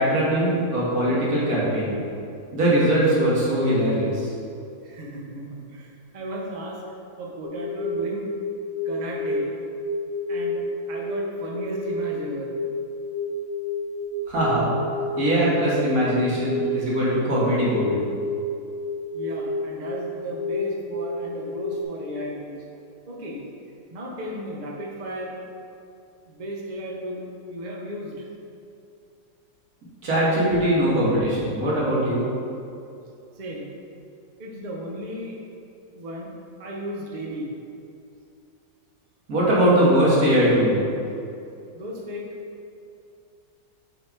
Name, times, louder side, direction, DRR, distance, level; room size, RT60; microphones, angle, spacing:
voice 1, 0.0-2.0 2.5-4.3 14.3-14.7 15.2-18.0 30.0-32.3 39.3-40.8, equal, 50° right, -7 dB, 2.0 m, -21 dB
voice 2, 4.8-6.8 7.2-8.2 8.8-9.5 10.3-10.6 10.9-12.6 19.1-22.6 23.1-23.4 23.9-25.4 26.3-28.3 33.3-33.7 34.4-35.4 35.9-36.3 36.6-37.6 41.7-42.3, equal, 70° right, -2 dB, 0.4 m, -34 dB
sound 1, 7.4-21.8, left 1 dB, 75° left, 1.3 m, -30 dB
6.5 x 4.2 x 4.5 m, 2.6 s
omnidirectional pair, 2.1 m